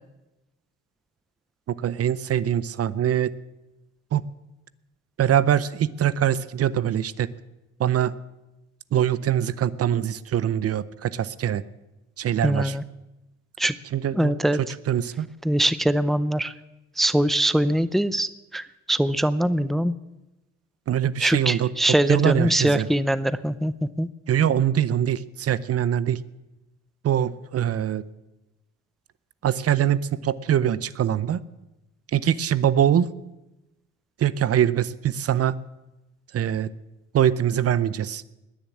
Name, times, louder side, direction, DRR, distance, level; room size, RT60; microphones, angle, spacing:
voice 1, 1.7-3.3 4.1-4.3 5.2-7.3 7.8-8.1 8.9-11.6 12.2-12.7 13.9-14.3 14.6-15.3 20.9-21.7 22.1-22.9 24.3-26.2 27.0-28.1 29.4-31.4 32.1-33.1 34.2-35.6 36.3-36.7 37.1-38.2, right 10 dB, 50° right, 18 dB, 0.6 m, -23 dB
voice 2, 12.4-12.8 13.6-13.7 14.1-14.6 15.4-16.5 17.0-19.9 21.2-24.1, right 1 dB, ahead, 15 dB, 0.5 m, -22 dB
20.5 x 7.0 x 8.6 m, 1.0 s
cardioid pair, 90°, 30 cm